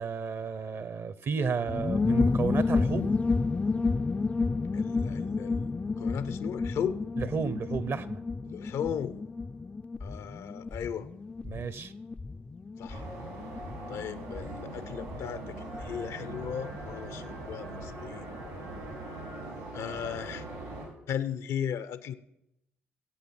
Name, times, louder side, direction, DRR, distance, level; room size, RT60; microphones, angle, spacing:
voice 1, 0.0-3.1 7.2-8.2 11.4-11.9, right 5 dB, 50° right, 17 dB, 1.0 m, -32 dB
sound 1, 1.7-18.0 18.2-18.3 18.5-18.9, left 4 dB, 25° left, 0.5 m, -31 dB
voice 2, 4.7-7.0 8.5-9.2 10.0-11.1 12.8-13.1 13.9-18.3 19.7-20.5 21.1-22.1, left 8 dB, 70° left, 14 dB, 0.8 m, -36 dB
sound 2, 12.9-20.9, right 2 dB, 80° right, 5.2 m, -41 dB
17.5 x 8.4 x 6.0 m, 0.86 s
hypercardioid pair, 50°, 5 cm